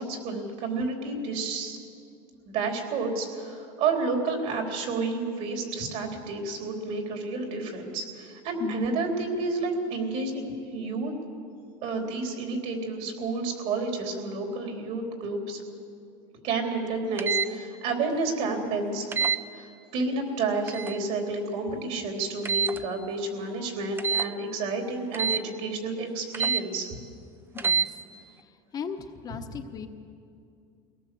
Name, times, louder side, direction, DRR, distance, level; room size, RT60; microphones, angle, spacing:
voice 1, 0.0-1.8 2.5-11.1 11.8-15.6 16.4-19.1 19.5-26.9 29.5-29.6, right 3 dB, 55° right, 3 dB, 3.7 m, -30 dB
voice 2, 8.6-8.9 22.7-22.8 27.5-27.9 28.7-29.9, left 7 dB, 30° left, 4 dB, 1.1 m, -36 dB
sound 1, 17.2-17.5 19.1-19.4 20.7-21.0 22.5-22.8 24.0-24.3 25.1-25.4 26.3-26.6 27.6-27.9, right 6 dB, 15° right, 0.5 m, -26 dB
22.5 x 18.0 x 7.7 m, 2.5 s
cardioid pair, 150°, 14 cm